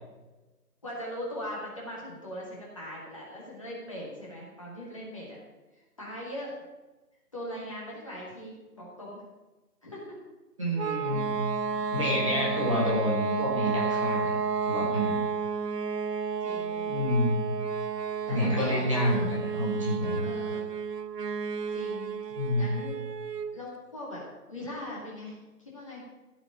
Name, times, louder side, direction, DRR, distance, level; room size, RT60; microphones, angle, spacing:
voice 1, 0.8-5.4 5.7-6.5 7.3-9.2 9.8-10.2 11.7-11.8 16.4-16.8 18.3-19.1 20.2-20.7 21.7-22.1 22.5-23.1 23.5-24.2 24.5-26.0, equal, 20° left, -5 dB, 2.2 m, -40 dB
voice 2, 10.6-11.4 11.9-14.3 14.7-15.2 16.9-17.4 18.3-20.3 22.4-22.7, left 1 dB, 20° right, -5 dB, 1.9 m, -28 dB
sound 1, 10.8-23.6, right 5 dB, 90° right, 0.8 m, -31 dB
15.0 x 5.1 x 8.9 m, 1.2 s
figure-of-eight pair, 175°, 47 cm